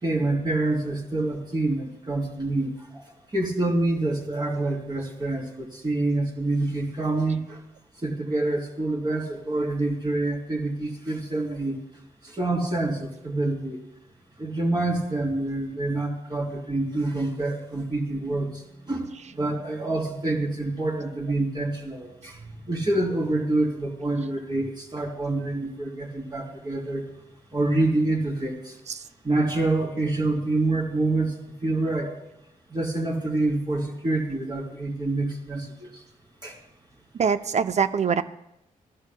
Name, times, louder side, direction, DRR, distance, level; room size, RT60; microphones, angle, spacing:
voice 1, 0.0-3.0 3.3-7.6 8.0-11.7 12.2-13.8 14.4-18.6 18.9-27.1 27.5-28.8 29.2-31.3 31.6-32.1 32.7-35.9 36.4-36.6, right 2 dB, 30° right, -3 dB, 3.6 m, -27 dB
voice 2, 37.1-38.2, right 6 dB, 50° right, 12 dB, 0.5 m, -23 dB
17.0 x 12.0 x 2.2 m, 0.87 s
cardioid pair, 60°, 14 cm